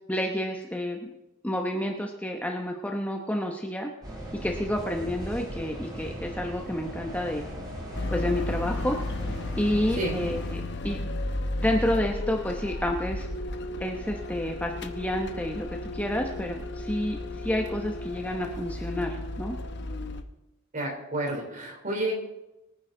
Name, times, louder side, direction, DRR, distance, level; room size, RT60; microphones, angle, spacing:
voice 1, 0.1-1.1 1.4-3.9 4.3-7.4 8.1-9.0 9.6-11.0 11.6-13.3 13.8-19.5, left 1 dB, 5° left, 2 dB, 1.0 m, -29 dB
sound 1, 4.0-10.5, equal, 20° right, 5.5 m, -38 dB
sound 2, 7.9-20.2, left 2 dB, 55° left, 0.9 m, -34 dB
voice 2, 20.7-22.1, right 2 dB, 40° right, 1 dB, 3.5 m, -30 dB
23.0 x 9.7 x 3.9 m, 0.95 s
head